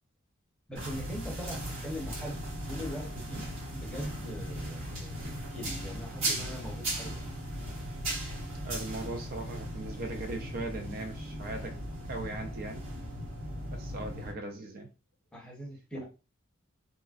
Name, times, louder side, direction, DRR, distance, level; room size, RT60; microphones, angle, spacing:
voice 1, 0.7-5.2 5.5-7.3 15.3-16.0, equal, 5° left, 0.7 m, -41 dB
sound 1, 0.8-14.3, right 1 dB, 65° right, 1.2 m, -37 dB
voice 2, 8.6-11.8 12.1-12.9 13.7-14.9 15.9-16.0, right 2 dB, 45° right, 0.3 m, -39 dB
3.0 x 2.5 x 2.4 m
head